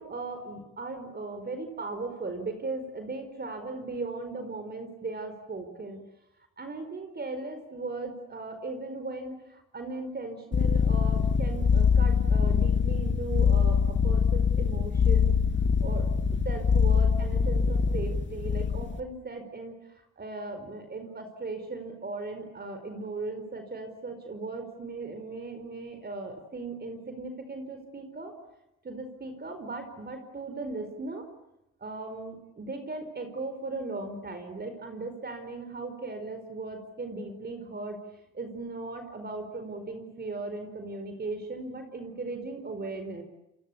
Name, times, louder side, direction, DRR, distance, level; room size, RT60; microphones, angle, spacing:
voice 1, 0.0-6.0 6.6-15.3 15.8-16.0 16.4-28.3 28.8-31.3 31.8-38.0 38.3-43.2, right 3 dB, 35° right, 7 dB, 4.6 m, -37 dB
sound 1, 10.5-19.0, left 6 dB, 40° left, 2.3 m, -24 dB
28.0 x 24.5 x 8.5 m, 0.90 s
cardioid pair, 90°, 30 cm